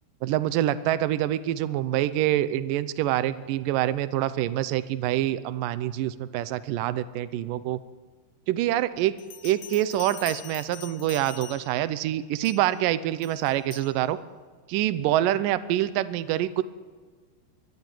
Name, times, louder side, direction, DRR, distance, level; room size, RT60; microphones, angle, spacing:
voice 1, 0.2-7.8 8.5-9.2 9.4-14.2 14.7-16.6, right 13 dB, 85° right, 14 dB, 1.9 m, -26 dB
Bell, 9.2-11.9 12.4-12.8 13.2-13.9, left 10 dB, 85° left, 1.5 m, -43 dB
23.5 x 15.0 x 9.2 m, 1.5 s
omnidirectional pair, 4.9 m